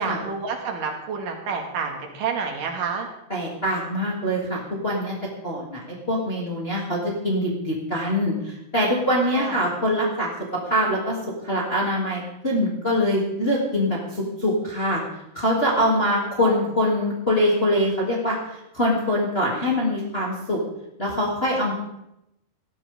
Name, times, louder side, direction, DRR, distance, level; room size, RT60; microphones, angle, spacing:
voice 1, 0.0-3.1 9.3-9.6 16.0-16.6, right 5 dB, 60° right, 3 dB, 3.6 m, -29 dB
voice 2, 3.3-5.1 5.4-5.8 6.1-10.3 10.6-11.2 11.4-15.0 15.3-18.4 18.7-20.6 21.0-21.7, left 1 dB, 15° left, -4 dB, 2.6 m, -23 dB
18.5 x 15.0 x 3.7 m, 0.85 s
omnidirectional pair, 4.5 m